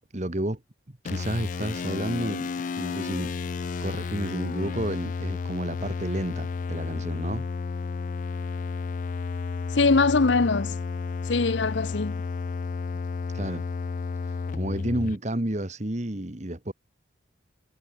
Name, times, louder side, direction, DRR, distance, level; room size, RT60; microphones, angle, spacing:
voice 1, 0.1-0.6 0.9-3.3 3.8-7.5 13.3-13.7 14.2-16.7, right 1 dB, 40° right, 1.7 m, -31 dB
sound 1, 1.0-15.2, left 4 dB, 45° left, 0.3 m, -32 dB
voice 2, 9.7-10.8 11.2-12.2, left 3 dB, 80° left, 0.8 m, -22 dB
head